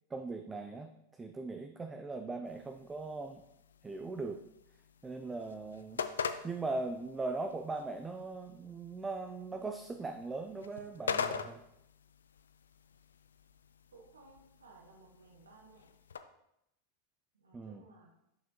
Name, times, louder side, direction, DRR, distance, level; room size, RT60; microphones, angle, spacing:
voice 1, 0.1-3.4 3.8-4.4 5.0-6.0 6.4-11.6 17.5-17.8, right 3 dB, 15° right, 6 dB, 0.4 m, -39 dB
sound 1, 2.5-16.2, left 6 dB, 70° left, 0.4 m, -44 dB
voice 2, 13.9-15.8 17.4-18.1, right 3 dB, 70° right, 0 dB, 1.0 m, -58 dB
7.1 x 5.6 x 2.9 m, 0.81 s
figure-of-eight pair, 90°, 0 cm